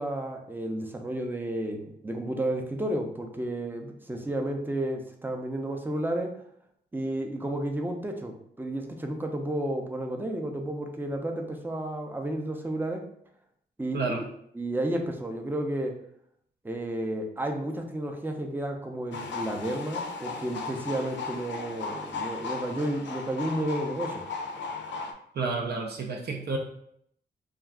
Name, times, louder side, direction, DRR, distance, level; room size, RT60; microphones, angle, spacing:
voice 1, 0.0-6.3 6.9-13.0 13.8-14.3 14.5-15.9 16.6-24.2, right 1 dB, 10° right, 3 dB, 0.5 m, -32 dB
sound 1, 19.1-25.1, left 4 dB, 80° left, 0.4 m, -36 dB
voice 2, 25.3-26.6, right 4 dB, 60° right, 1 dB, 0.5 m, -30 dB
2.3 x 2.3 x 3.5 m, 0.71 s
cardioid pair, 80°, 19 cm